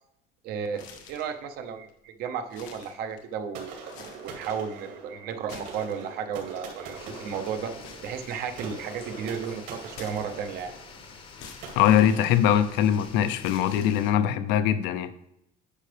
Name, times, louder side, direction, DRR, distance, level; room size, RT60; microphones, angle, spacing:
voice 1, 0.4-7.7 8.0-10.7, right 7 dB, 55° right, 0.8 m, -34 dB
sound 1, 0.7-1.4 1.9-2.0 2.4-3.4 3.8-4.5 5.3-6.3 7.8-8.9 9.9-10.7 11.4-12.9 13.4-14.3, left 6 dB, 85° left, 1.3 m, -48 dB
sound 2, 3.5-13.2, right 5 dB, 70° right, 2.4 m, -43 dB
sound 3, 6.9-14.1, left 5 dB, 30° left, 0.8 m, -47 dB
voice 2, 11.8-15.1, left 10 dB, 70° left, 0.6 m, -22 dB
9.9 x 5.7 x 3.4 m
cardioid pair, 160°, 19 cm